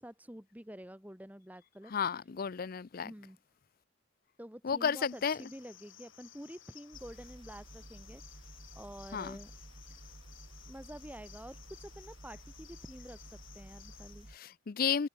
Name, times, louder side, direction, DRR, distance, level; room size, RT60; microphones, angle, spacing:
voice 1, 0.0-1.9 3.0-3.4 4.4-9.5 10.7-13.2 13.5-14.3, equal, 10° right, 2.2 m, -49 dB
voice 2, 1.9-3.1 4.6-5.4 9.1-9.4 14.3-15.1, left 6 dB, 45° left, 0.5 m, -32 dB
Cricket, 5.0-14.4, left 11 dB, 80° left, 7.4 m, -57 dB
sound 1, 6.9-14.4, right 1 dB, 30° right, 0.9 m, -52 dB
head